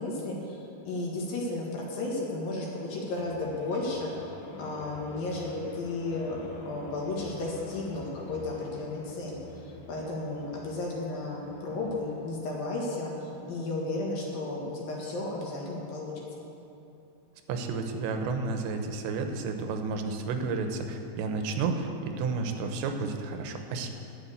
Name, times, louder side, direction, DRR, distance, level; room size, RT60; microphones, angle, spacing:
voice 1, 0.0-16.1, left 2 dB, 60° left, -3 dB, 3.2 m, -34 dB
sound 1, 3.0-16.3, left 2 dB, 85° left, 3.4 m, -47 dB
voice 2, 17.5-23.9, right 4 dB, 90° right, 5 dB, 3.2 m, -31 dB
11.5 x 7.8 x 8.4 m, 2.9 s
omnidirectional pair, 5.0 m